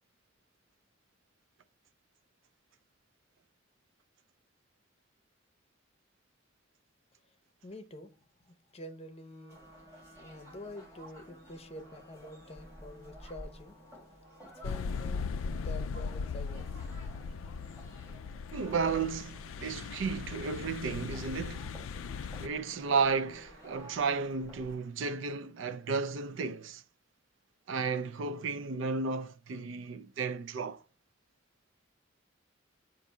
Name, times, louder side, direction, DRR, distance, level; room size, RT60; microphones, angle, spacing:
voice 1, 7.6-8.1 8.4-9.6 10.2-13.8 14.6-16.8, left 1 dB, 30° left, 0.7 m, -47 dB
sound 1, 8.9-25.3, equal, 55° right, 1.3 m, -58 dB
sound 2, 9.5-24.8, equal, 15° right, 1.9 m, -54 dB
sound 3, 14.6-22.5, left 5 dB, 85° left, 0.3 m, -38 dB
voice 2, 18.5-21.8 22.4-26.8 27.7-30.8, right 5 dB, 70° right, 0.4 m, -33 dB
7.2 x 2.6 x 5.3 m
head